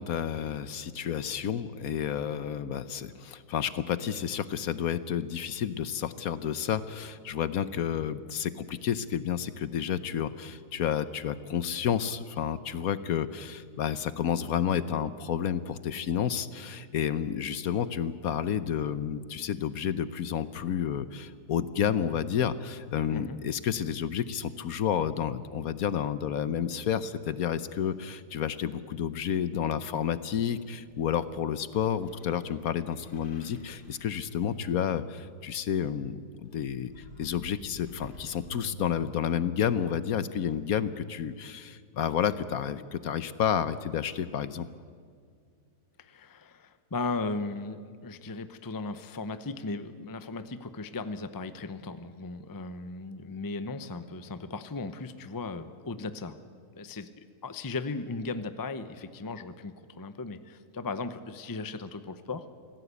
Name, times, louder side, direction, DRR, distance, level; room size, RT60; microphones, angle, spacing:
voice 1, 0.0-36.9 37.2-44.7, left 9 dB, 65° left, 14 dB, 1.1 m, -30 dB
voice 2, 23.1-23.4 46.0-56.4 56.7-62.5, left 3 dB, 20° left, 11 dB, 0.6 m, -37 dB
sound 1, 30.8-35.7 36.4-39.8 40.5-40.6, left 1 dB, 85° left, 2.9 m, -49 dB
25.5 x 17.5 x 8.3 m, 2.1 s
omnidirectional pair, 1.7 m